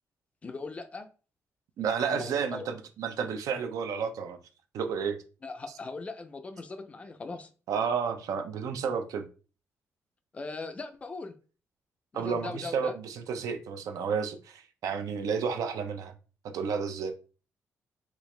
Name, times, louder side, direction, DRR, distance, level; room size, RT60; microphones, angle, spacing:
voice 1, 0.4-1.1 2.1-2.7 5.4-7.5 10.3-11.3 12.1-12.9, left 3 dB, 20° left, 0.4 m, -39 dB
voice 2, 1.8-4.4 4.7-5.2 7.7-9.3 12.1-16.1 16.4-17.1, right 6 dB, 80° right, 0.6 m, -31 dB
4.5 x 2.4 x 3.2 m
wide cardioid pair, 180°, 6 cm